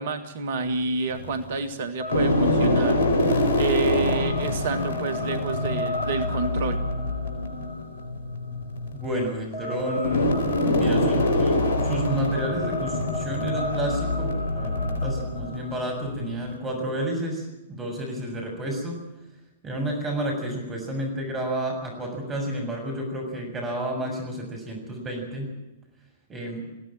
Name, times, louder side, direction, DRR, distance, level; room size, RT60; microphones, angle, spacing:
voice 1, 0.0-6.8, right 4 dB, 55° right, 10 dB, 1.8 m, -29 dB
sound 1, 0.7-1.5 2.0-16.6, left 1 dB, 60° left, 4.4 m, -25 dB
voice 2, 8.9-17.4 17.7-19.0 19.6-25.5 26.3-26.7, right 1 dB, 20° right, 1 dB, 6.9 m, -31 dB
20.5 x 16.5 x 9.0 m, 0.97 s
figure-of-eight pair, 105°, 0 cm